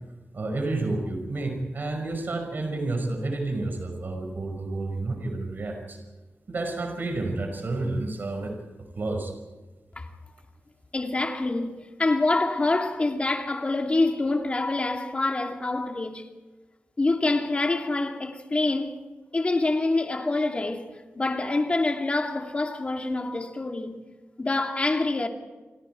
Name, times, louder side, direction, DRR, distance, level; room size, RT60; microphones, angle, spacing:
voice 1, 0.3-6.0 6.5-8.5 9.0-9.3, right 2 dB, 50° right, 5.4 m, -30 dB
voice 2, 10.9-16.3 17.0-19.0 19.3-20.9 21.2-24.0 24.4-25.3, left 2 dB, 30° left, 2.7 m, -26 dB
29.0 x 25.5 x 4.7 m
wide cardioid pair, 145°, 4 cm